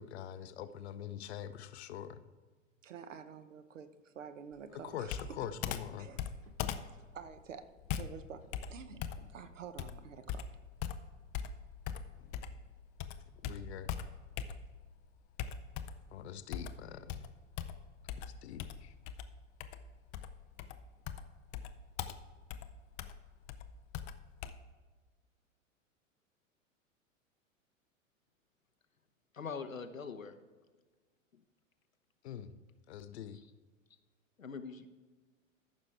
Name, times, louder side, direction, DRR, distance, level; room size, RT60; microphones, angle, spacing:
voice 1, 0.0-2.2 4.7-6.1 13.4-13.9 16.1-17.2 18.1-18.9 32.2-32.5 32.9-33.4, left 9 dB, 55° left, 12 dB, 0.8 m, -44 dB
voice 2, 2.8-5.2 5.7-6.3 6.9-7.6 7.9-8.4 8.7-10.5, right 7 dB, 70° right, 10 dB, 0.9 m, -49 dB
Computer keyboard, 5.1-12.7 13.0-14.9 15.4-16.1 16.5-24.5, left 8 dB, 20° left, 0.4 m, -41 dB
voice 3, 29.3-30.3 34.4-34.9, left 5 dB, 85° left, 8 dB, 0.9 m, -42 dB
14.0 x 6.2 x 3.3 m, 1.4 s
figure-of-eight pair, 95°, 39 cm